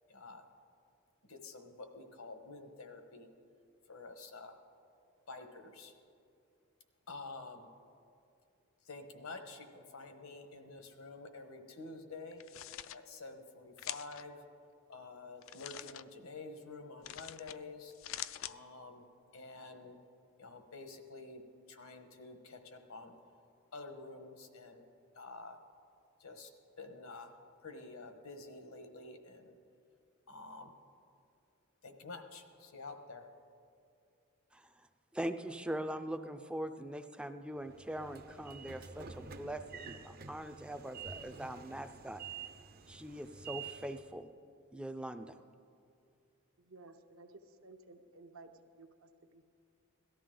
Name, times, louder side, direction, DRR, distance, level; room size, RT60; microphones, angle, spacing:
voice 1, 0.1-0.5 1.2-3.3 3.9-4.6 5.3-5.9 7.1-7.7 8.8-12.4 12.9-14.4 14.9-17.9 18.4-19.0 19.3-20.0 20.4-23.2 23.7-24.8 25.1-25.6 26.2-26.5 26.8-27.4 27.6-29.6 30.3-30.7 31.8-33.3, left 3 dB, 80° left, 6 dB, 1.2 m, -49 dB
sound 1, 12.3-13.0 13.8-14.2 15.4-16.0 17.0-17.6 17.9-18.5, left 13 dB, 65° left, 0.3 m, -44 dB
voice 2, 34.5-34.9 35.1-42.2 42.9-44.3 44.7-45.4, right 1 dB, 5° right, 8 dB, 0.4 m, -42 dB
Train / Sliding door, 37.6-44.1, right 6 dB, 45° right, 0.6 m, -49 dB
voice 3, 46.6-48.5 48.8-49.4, right 3 dB, 70° right, 6 dB, 0.9 m, -56 dB
17.5 x 13.0 x 3.8 m, 2.5 s
head